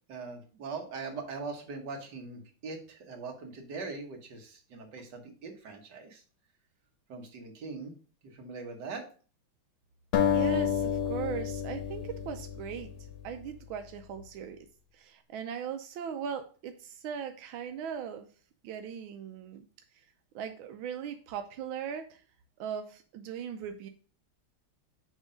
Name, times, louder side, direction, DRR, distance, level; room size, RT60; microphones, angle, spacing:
voice 1, 0.1-6.2 7.1-7.9 8.3-9.0, right 4 dB, 60° right, 2 dB, 1.8 m, -41 dB
sound 1, 10.1-13.4, left 8 dB, 65° left, 1.2 m, -30 dB
voice 2, 10.3-12.9 13.2-14.7 14.9-18.3 18.6-19.7 20.3-22.2 22.6-23.9, right 8 dB, 90° right, 6 dB, 1.4 m, -39 dB
6.3 x 3.7 x 5.0 m, 0.39 s
omnidirectional pair, 2.2 m